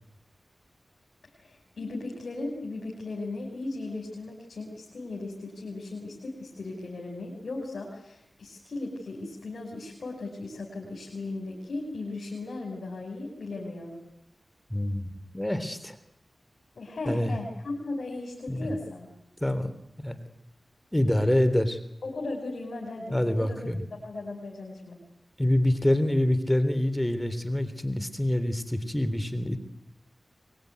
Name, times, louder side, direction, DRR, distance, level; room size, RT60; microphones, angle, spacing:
voice 1, 1.3-14.0 16.8-19.1 22.0-25.0, left 2 dB, 85° left, -1 dB, 5.4 m, -37 dB
voice 2, 14.7-16.0 17.0-17.4 18.5-18.7 19.4-19.7 20.0-20.2 20.9-21.8 23.1-23.8 25.4-29.6, left 1 dB, 15° left, 11 dB, 3.3 m, -26 dB
24.0 x 21.5 x 9.5 m, 0.80 s
cardioid pair, 50°, 0 cm